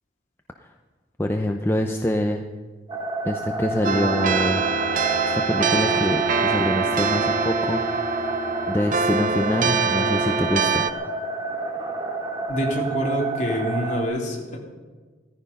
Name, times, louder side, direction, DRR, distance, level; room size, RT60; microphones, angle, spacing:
voice 1, 1.2-2.4 3.2-4.6 5.3-7.8 8.7-10.9, left 1 dB, 15° left, 4 dB, 0.7 m, -25 dB
sound 1, 2.9-14.0, right 2 dB, 25° right, 2.3 m, -30 dB
sound 2, 3.8-10.9, right 5 dB, 45° right, 0.7 m, -24 dB
voice 2, 12.5-14.6, equal, 40° left, -2 dB, 3.5 m, -26 dB
17.0 x 14.5 x 5.5 m, 1.4 s
head